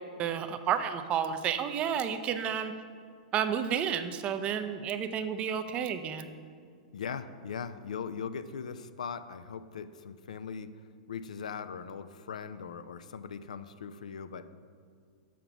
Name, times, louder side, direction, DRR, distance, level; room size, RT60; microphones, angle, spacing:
voice 1, 0.2-2.7 3.3-6.3, right 8 dB, 30° right, 9 dB, 0.5 m, -31 dB
voice 2, 6.9-10.7 11.1-14.5, left 6 dB, 70° left, 12 dB, 0.4 m, -40 dB
7.2 x 5.7 x 5.9 m, 2.1 s
figure-of-eight pair, 105°, 4 cm